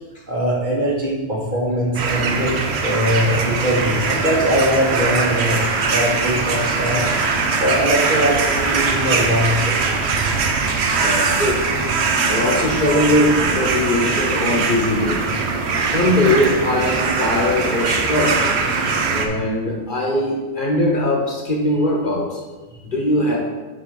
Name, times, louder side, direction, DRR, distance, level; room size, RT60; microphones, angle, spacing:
voice 1, 0.3-5.6 5.9-7.0 7.6-10.0, equal, 40° right, -5 dB, 1.8 m, -21 dB
sound 1, 1.9-19.3, right 4 dB, 65° right, 1.0 m, -21 dB
voice 2, 11.0-11.6 12.3-15.3 15.8-18.5 19.1-22.4 22.8-23.4, left 1 dB, 45° left, -2 dB, 1.3 m, -20 dB
5.9 x 5.7 x 4.8 m, 1.3 s
omnidirectional pair, 1.2 m